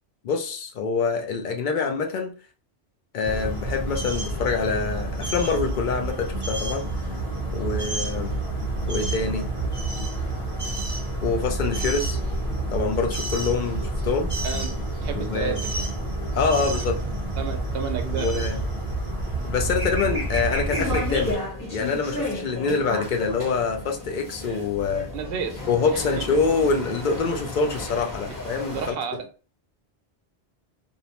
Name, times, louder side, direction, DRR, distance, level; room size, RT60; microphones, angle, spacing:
voice 1, 0.2-2.3 3.1-6.8 7.5-8.3 8.9-9.5 11.2-12.2 12.7-14.3 15.1-15.6 16.3-16.9 18.2-18.6 19.4-21.4 21.7-25.1 25.7-29.0, left 4 dB, 55° left, 0.6 m, -25 dB
sound 1, 3.2-21.3, right 2 dB, 30° right, 0.8 m, -28 dB
voice 2, 14.4-15.9 16.8-16.9 17.4-18.4 25.1-25.6 25.8-26.2 28.7-29.3, right 6 dB, 65° right, 0.7 m, -32 dB
sound 2, 20.7-28.9, left 1 dB, 20° left, 0.7 m, -33 dB
2.6 x 2.1 x 2.8 m
omnidirectional pair, 1.1 m